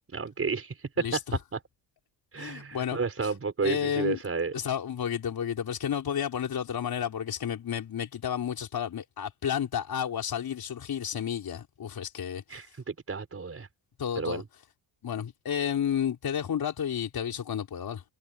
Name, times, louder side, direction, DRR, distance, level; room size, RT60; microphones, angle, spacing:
voice 1, 0.1-1.2 1.5-1.6 2.3-4.5 12.5-13.7 14.1-14.4, right 4 dB, 35° right, 4.7 m, -31 dB
voice 2, 2.4-3.3 3.6-4.2 4.5-12.6 14.0-14.4 15.0-18.0, left 8 dB, 60° left, 4.4 m, -31 dB
cardioid pair, 100°, 42 cm